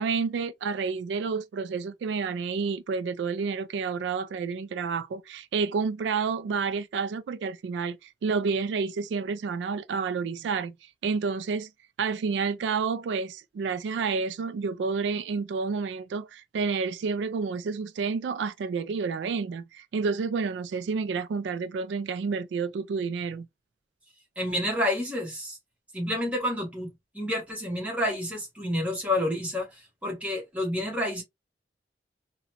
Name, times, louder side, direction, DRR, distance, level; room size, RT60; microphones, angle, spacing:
voice 1, 0.0-11.7 12.0-23.5, right 5 dB, 90° right, 0.3 m, -30 dB
voice 2, 24.4-25.6 25.9-26.9 27.1-29.7 30.0-31.2, left 1 dB, 10° right, 1.2 m, -29 dB
3.8 x 2.2 x 2.8 m
head